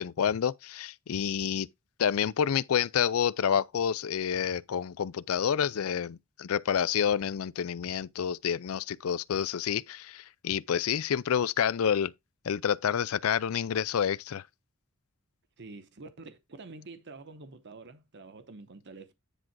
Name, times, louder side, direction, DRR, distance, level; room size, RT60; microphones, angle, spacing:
voice 1, 0.0-1.7 2.0-12.1 12.4-14.4, left 8 dB, 80° left, 0.4 m, -28 dB
voice 2, 15.6-19.1, right 3 dB, 55° right, 0.9 m, -47 dB
10.0 x 3.7 x 4.6 m
head